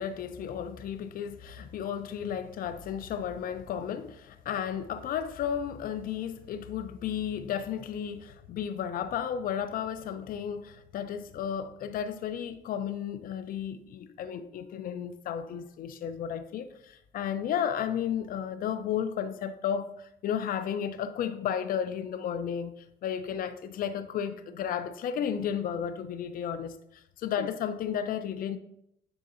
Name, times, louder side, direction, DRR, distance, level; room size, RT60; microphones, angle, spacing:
voice 1, 0.0-28.6, left 8 dB, 60° left, 0.5 m, -33 dB
9.8 x 3.7 x 2.6 m
cardioid pair, 110°, 17 cm